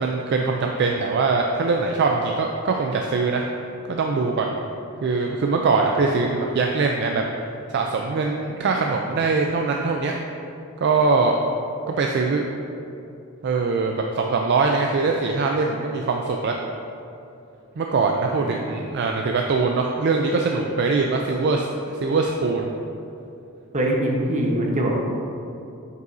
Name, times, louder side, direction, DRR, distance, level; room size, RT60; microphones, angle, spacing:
voice 1, 0.0-3.4 3.9-4.5 5.0-7.2 7.7-10.1 10.8-11.4 11.9-12.4 13.4-16.6 17.8-21.7 21.9-22.7, right 4 dB, 50° right, 1 dB, 0.4 m, -22 dB
voice 2, 18.2-18.6 23.7-25.0, right 1 dB, 35° right, -1 dB, 0.9 m, -23 dB
7.7 x 5.4 x 2.6 m, 2.7 s
head